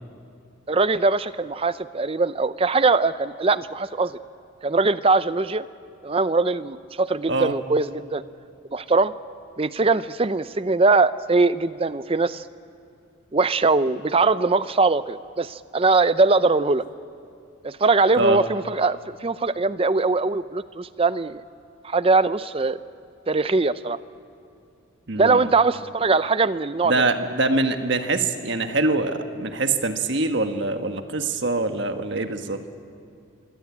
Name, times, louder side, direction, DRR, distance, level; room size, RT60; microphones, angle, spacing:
voice 1, 0.7-4.2 4.6-5.6 6.0-8.2 8.7-9.1 9.6-12.4 13.3-16.8 17.6-21.4 21.8-22.8 23.3-24.0 25.1-26.9, right 3 dB, 25° right, 14 dB, 0.5 m, -21 dB
voice 2, 25.1-25.5 26.8-32.6, right 2 dB, 55° right, 7 dB, 1.5 m, -24 dB
25.5 x 22.5 x 8.5 m, 2.5 s
head